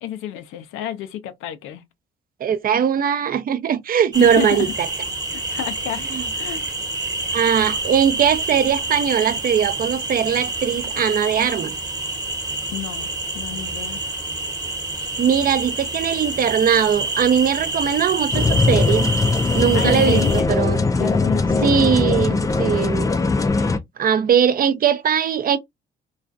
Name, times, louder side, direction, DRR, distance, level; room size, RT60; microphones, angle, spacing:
voice 1, 0.0-1.9 4.2-4.7 5.3-6.6 12.7-13.1 13.3-14.0 19.7-20.6 21.0-21.7, left 11 dB, 90° left, 0.4 m, -30 dB
voice 2, 2.4-4.9 6.1-6.2 7.3-11.7 15.2-19.1 19.5-20.8 21.6-23.1 24.0-25.6, right 8 dB, 45° right, 0.5 m, -20 dB
sound 1, 4.1-20.4, right 2 dB, 20° right, 1.0 m, -27 dB
sound 2, 18.3-23.8, left 3 dB, 15° left, 0.3 m, -20 dB
2.3 x 2.3 x 2.4 m
cardioid pair, 90°, 20 cm